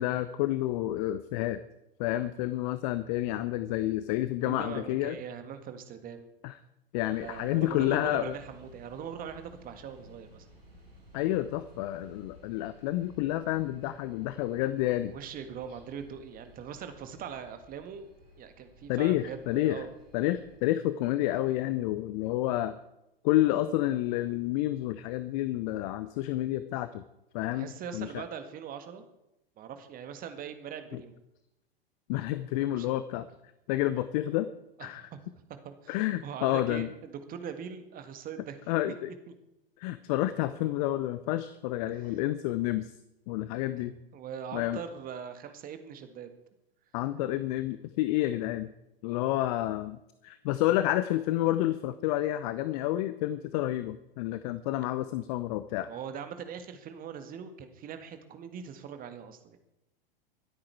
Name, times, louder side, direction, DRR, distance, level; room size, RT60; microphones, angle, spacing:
voice 1, 0.0-1.6 2.0-5.2 6.4-6.5 6.9-8.4 11.1-15.2 18.9-19.8 20.1-22.8 23.2-27.0 27.3-28.2 30.9-31.0 32.1-33.3 33.7-34.5 34.8-35.0 35.9-36.9 38.7-39.1 39.8-42.9 43.3-43.9 44.5-44.8 46.9-48.7 49.0-50.0 50.2-55.9, left 14 dB, 40° left, 13 dB, 0.7 m, -29 dB
voice 2, 4.4-6.3 7.2-10.5 14.5-14.6 15.1-18.1 18.4-19.9 27.5-29.0 29.6-31.2 32.5-32.9 34.8-35.2 35.5-36.0 36.2-38.6 43.8-43.9 44.1-46.4 55.8-59.6, right 7 dB, 30° right, 8 dB, 1.7 m, -41 dB
sound 1, 7.1-20.6, equal, 85° right, 5.1 m, -55 dB
24.0 x 8.6 x 4.7 m, 0.89 s
figure-of-eight pair, 95°, 30 cm